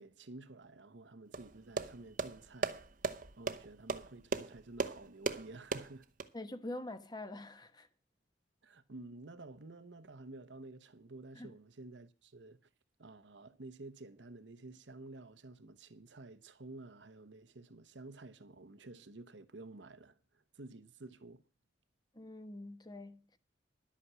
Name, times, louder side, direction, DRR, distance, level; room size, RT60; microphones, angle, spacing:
voice 1, 0.0-2.7 3.4-6.1 8.6-12.6 13.0-21.5, right 2 dB, 85° right, 1.1 m, -51 dB
sound 1, 1.3-6.3, right 3 dB, 50° right, 0.9 m, -38 dB
voice 2, 6.3-7.9 11.3-11.6 22.1-23.4, left 1 dB, 25° left, 1.1 m, -45 dB
11.5 x 8.5 x 6.1 m
head